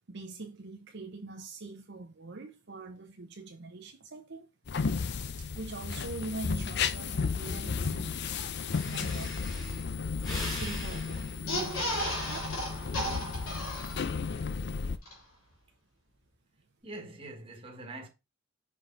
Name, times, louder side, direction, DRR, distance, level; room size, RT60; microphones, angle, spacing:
voice 1, 0.1-4.5 5.4-8.4 8.9-9.4 10.3-12.6, right 3 dB, 55° right, 0.8 m, -43 dB
sound 1, 4.7-15.0, left 5 dB, 50° left, 0.5 m, -34 dB
Breathing, 8.4-8.5 8.7-12.9 13.4-13.8, left 1 dB, 20° left, 2.8 m, -42 dB
sound 2, 11.5-14.3 14.7-14.8 15.0-15.1, equal, 80° left, 2.7 m, -34 dB
voice 2, 16.8-18.1, right 2 dB, 25° right, 1.5 m, -43 dB
6.1 x 4.9 x 3.8 m
head